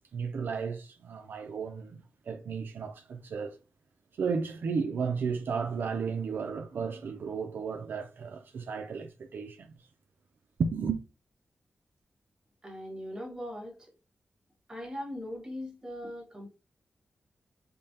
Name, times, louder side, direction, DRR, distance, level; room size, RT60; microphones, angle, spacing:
voice 1, 0.1-2.0 2.3-3.6 4.2-9.7 10.6-11.0, right 5 dB, 75° right, 0.4 m, -33 dB
voice 2, 12.6-13.9 14.7-16.5, left 1 dB, 20° right, 1.5 m, -40 dB
5.2 x 2.1 x 2.7 m
wide cardioid pair, 135°, 4 cm